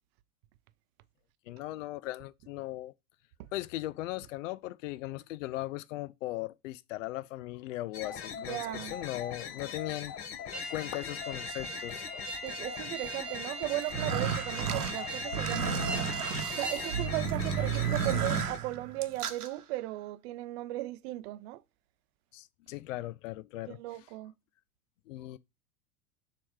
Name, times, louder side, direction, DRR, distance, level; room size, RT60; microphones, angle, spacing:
voice 1, 1.5-2.9 3.5-10.1 10.7-12.1 22.3-23.8 25.1-25.4, left 16 dB, 60° left, 0.5 m, -38 dB
sound 1, 7.9-18.6, left 8 dB, 30° left, 0.9 m, -42 dB
voice 2, 8.5-9.0 12.4-15.9 16.5-21.6 23.7-24.3, right 17 dB, 45° right, 0.5 m, -36 dB
sound 2, 10.5-17.1, right 3 dB, ahead, 0.8 m, -40 dB
sound 3, 13.8-19.5, right 7 dB, 80° right, 1.0 m, -32 dB
7.0 x 3.0 x 4.7 m
figure-of-eight pair, 90°, 45 cm